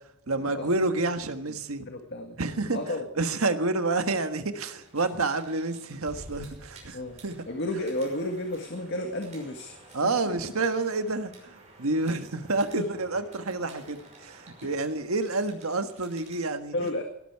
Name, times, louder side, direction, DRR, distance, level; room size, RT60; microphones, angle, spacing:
voice 1, 0.3-1.8 2.4-2.8 3.2-7.0 7.2-7.3 9.9-16.7, right 3 dB, 85° right, 1.5 m, -29 dB
voice 2, 1.8-2.4 2.7-3.1 6.9-7.2 7.5-10.0 12.1-12.2 12.8-12.9 14.6-14.7 16.7-17.0, left 1 dB, 55° left, 1.8 m, -32 dB
sound 1, 4.5-16.5, right 2 dB, 35° right, 6.0 m, -53 dB
Explosion, 6.1-9.3, equal, 65° right, 5.6 m, -49 dB
18.5 x 13.0 x 4.7 m
head